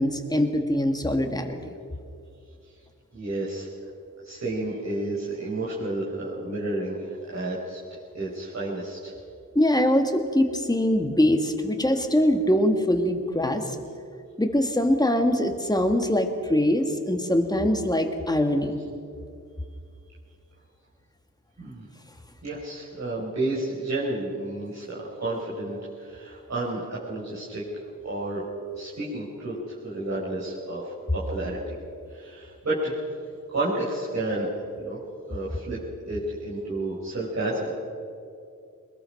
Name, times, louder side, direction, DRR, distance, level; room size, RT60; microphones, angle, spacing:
voice 1, 0.0-1.7 9.5-13.8 14.4-18.7, left 1 dB, 10° left, 4 dB, 2.1 m, -23 dB
voice 2, 3.1-3.7 4.2-7.8 8.1-9.1 21.6-21.8 22.4-27.6 28.0-28.4 28.7-31.7 32.1-33.0 33.5-34.5 34.7-35.0 35.3-35.8 36.1-37.7, right 2 dB, 55° right, -8 dB, 4.8 m, -31 dB
23.5 x 21.0 x 6.0 m, 2.5 s
wide cardioid pair, 85°, 33 cm